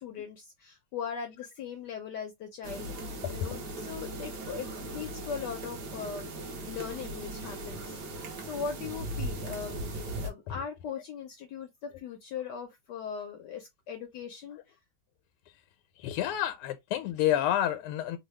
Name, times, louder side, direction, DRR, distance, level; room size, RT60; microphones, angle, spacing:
voice 1, 0.0-14.8, left 6 dB, 75° left, 1.0 m, -40 dB
sound 1, 2.6-10.3, right 1 dB, 60° right, 1.3 m, -38 dB
voice 2, 16.0-18.2, left 12 dB, 90° left, 1.5 m, -29 dB
3.7 x 2.3 x 3.1 m
omnidirectional pair, 2.4 m